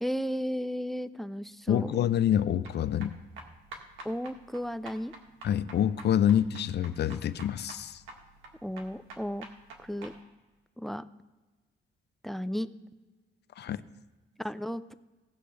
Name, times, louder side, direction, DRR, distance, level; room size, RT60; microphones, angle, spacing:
voice 1, 0.0-1.9 4.0-5.1 8.6-9.4 9.8-10.1 10.8-11.0 12.2-12.7 14.4-14.9, equal, ahead, 14 dB, 0.5 m, -34 dB
voice 2, 1.7-3.2 5.4-8.0 13.6-13.8, left 10 dB, 60° left, 14 dB, 0.6 m, -27 dB
sound 1, 2.6-10.2, right 3 dB, 85° right, 1.7 m, -48 dB
17.5 x 6.6 x 3.3 m, 1.2 s
cardioid pair, 90°, 20 cm